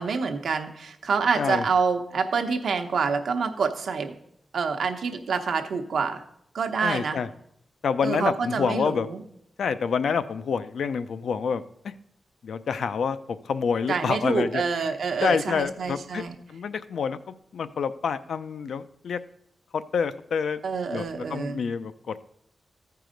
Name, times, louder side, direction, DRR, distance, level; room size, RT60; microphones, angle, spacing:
voice 1, 0.0-4.1 4.5-6.2 6.5-7.2 8.0-9.2 13.9-16.4 20.6-21.6, right 5 dB, 75° right, 5 dB, 0.9 m, -27 dB
voice 2, 6.8-7.3 7.8-9.1 9.6-11.6 12.4-14.6 15.2-16.2 16.5-19.2 19.7-20.6 20.9-22.2, left 6 dB, 80° left, 12 dB, 0.5 m, -27 dB
13.5 x 4.7 x 5.1 m, 0.73 s
wide cardioid pair, 130°, 0 cm